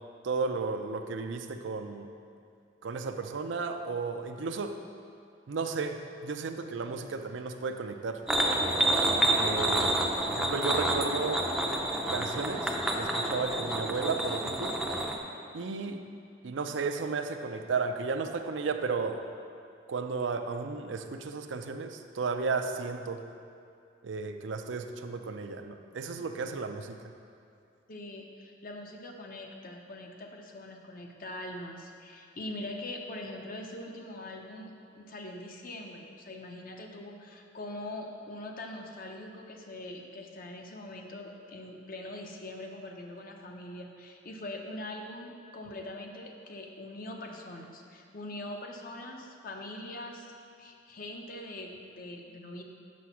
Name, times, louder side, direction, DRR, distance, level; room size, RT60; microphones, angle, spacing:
voice 1, 0.2-2.1 2.8-4.8 5.5-8.2 9.3-9.9 10.3-11.5 12.1-14.8 15.5-16.1 16.4-19.2 19.9-23.2 24.0-27.0, right 4 dB, 75° right, 6 dB, 0.5 m, -34 dB
sound 1, 8.3-15.2, right 1 dB, 5° right, 0.5 m, -28 dB
voice 2, 27.9-50.3 50.6-52.6, left 1 dB, 50° left, 2 dB, 0.8 m, -42 dB
6.2 x 6.1 x 5.7 m, 2.4 s
head